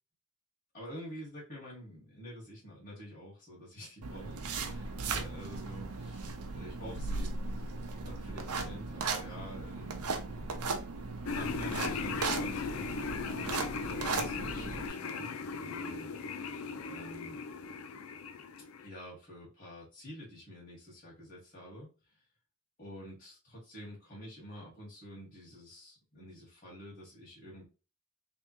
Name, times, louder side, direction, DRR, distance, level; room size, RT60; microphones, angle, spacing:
voice 1, 0.7-7.3 8.0-10.4 11.3-13.0 13.8-15.4 15.6-16.5 16.8-17.4 18.8-22.2 22.8-27.6, equal, 35° left, -6 dB, 1.8 m, -48 dB
sound 1, 4.0-14.9, right 4 dB, 90° right, 0.7 m, -37 dB
sound 2, 11.3-18.9, left 5 dB, 70° left, 0.5 m, -38 dB
3.5 x 3.4 x 3.0 m, 0.33 s
head